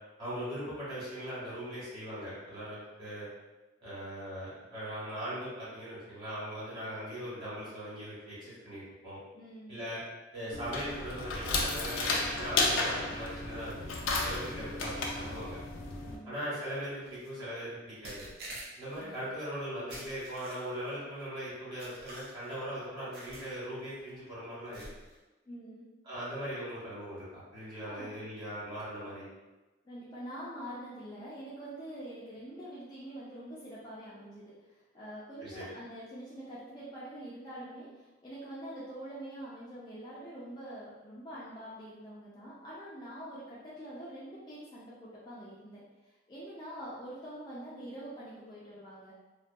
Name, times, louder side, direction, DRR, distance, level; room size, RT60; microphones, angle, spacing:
voice 1, 0.2-3.3 3.8-9.2 9.7-10.0 10.3-13.7 14.0-15.6 16.2-18.3 18.8-24.8 26.0-29.3 35.4-35.6, equal, 25° right, -11 dB, 1.4 m, -40 dB
voice 2, 9.3-9.9 16.0-16.3 19.0-19.2 25.5-25.8 27.8-28.2 29.8-49.1, right 1 dB, 20° left, -8 dB, 0.4 m, -45 dB
sound 1, 10.5-16.2, left 3 dB, 90° left, 0.4 m, -33 dB
sound 2, 17.0-17.3 18.0-19.0 19.9-20.9 21.8-22.6 23.1-23.5 23.9-24.1 24.7-25.2, right 1 dB, 55° right, 0.6 m, -47 dB
2.6 x 2.2 x 2.2 m, 1.1 s
head